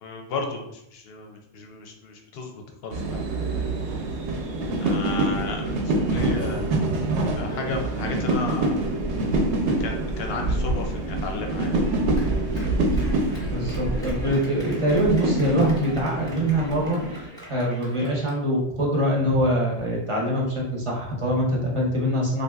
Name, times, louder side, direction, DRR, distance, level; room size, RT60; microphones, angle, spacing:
voice 1, 0.0-2.5 2.8-3.2 4.8-6.7 7.3-9.0 9.6-11.8, left 4 dB, 65° left, 3 dB, 0.7 m, -34 dB
sound 1, 2.9-17.3, right 2 dB, 70° right, 0.8 m, -26 dB
Clapping, 11.8-18.4, equal, 5° left, 0.7 m, -45 dB
voice 2, 13.5-22.4, equal, 35° right, -3 dB, 0.6 m, -24 dB
3.4 x 2.6 x 2.2 m, 0.77 s
omnidirectional pair, 1.3 m